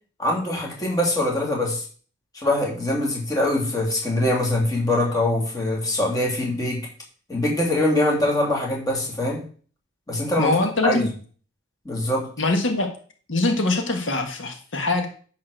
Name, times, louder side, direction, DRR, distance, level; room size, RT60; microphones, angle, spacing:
voice 1, 0.2-1.8 2.3-6.9 7.3-9.4 10.1-11.1 11.8-12.3, left 1 dB, 20° left, -2 dB, 2.6 m, -23 dB
voice 2, 10.4-11.1 12.4-12.9 13.3-15.1, left 2 dB, 80° left, 4 dB, 1.5 m, -23 dB
10.0 x 4.2 x 6.6 m, 0.42 s
head